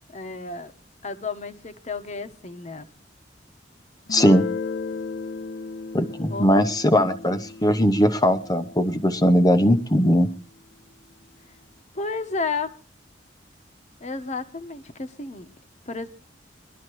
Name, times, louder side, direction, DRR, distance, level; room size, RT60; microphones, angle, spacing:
voice 1, 0.1-0.7 1.0-2.9 6.3-6.6 11.9-12.8 14.0-15.5 15.9-16.1, left 4 dB, 40° left, 1.1 m, -32 dB
Guitar, 4.1-9.6, left 4 dB, 70° left, 0.9 m, -35 dB
voice 2, 4.1-4.5 5.9-10.3, equal, 20° left, 0.8 m, -19 dB
22.0 x 12.5 x 3.1 m
head